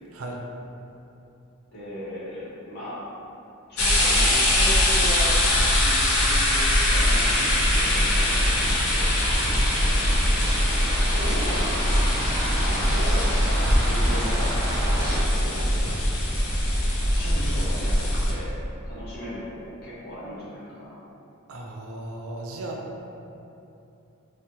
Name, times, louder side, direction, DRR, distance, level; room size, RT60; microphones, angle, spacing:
voice 1, 0.1-0.4 21.5-23.0, right 2 dB, 75° right, 0 dB, 0.4 m, -36 dB
voice 2, 1.7-3.1 3.7-9.1 11.1-11.7 12.6-14.5 15.1-16.0 17.1-18.5 18.9-21.0, equal, 50° left, -10 dB, 1.1 m, -36 dB
sound 1, 3.8-18.3, left 1 dB, 70° left, 0.6 m, -22 dB
sound 2, 6.9-15.2, equal, 10° right, 0.8 m, -32 dB
4.4 x 2.1 x 2.7 m, 2.8 s
head